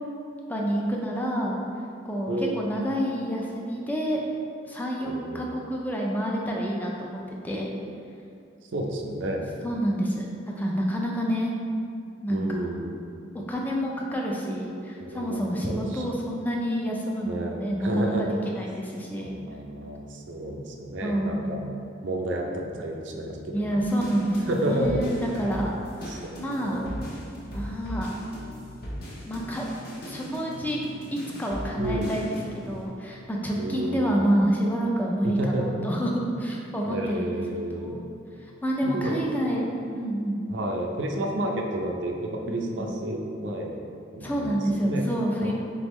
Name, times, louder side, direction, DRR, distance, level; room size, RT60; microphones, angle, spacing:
voice 1, 0.5-1.6 2.0-4.2 4.7-7.7 9.6-10.3 10.6-11.5 12.2-12.7 13.3-18.3 18.5-19.4 21.0-21.5 23.5-25.8 26.0-26.8 27.5-28.1 29.3-29.7 30.1-30.8 31.1-38.1 38.6-39.7 39.9-40.4 42.5-42.9 44.2-45.5, equal, 10° left, -2 dB, 0.3 m, -28 dB
voice 2, 2.3-2.8 5.0-5.4 8.7-9.5 12.3-12.9 15.0-15.4 15.6-16.0 17.3-18.2 18.5-18.6 19.1-21.7 22.0-23.7 24.5-25.3 26.1-26.3 26.6-27.0 31.8-32.2 33.5-34.2 35.2-36.0 36.8-38.0 38.8-39.1 40.5-43.8 44.1-45.1 45.4-45.5, right 1 dB, 65° right, 1 dB, 0.5 m, -31 dB
sound 1, 23.8-32.9, equal, 55° left, 0.8 m, -38 dB
3.9 x 3.5 x 3.0 m, 2.4 s
head